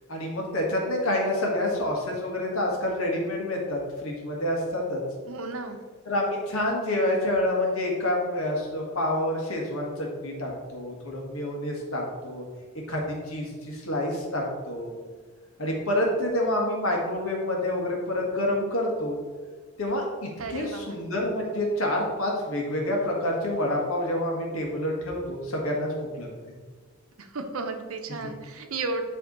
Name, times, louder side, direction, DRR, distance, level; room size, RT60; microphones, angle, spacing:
voice 1, 0.1-5.0 6.0-12.4 12.9-14.9 15.6-19.2 19.8-26.3 28.2-28.3, left 1 dB, 85° left, -1 dB, 1.7 m, -28 dB
voice 2, 5.3-5.8 20.4-20.9 27.2-29.0, right 3 dB, 85° right, 6 dB, 0.8 m, -33 dB
10.5 x 3.5 x 3.9 m, 1.5 s
head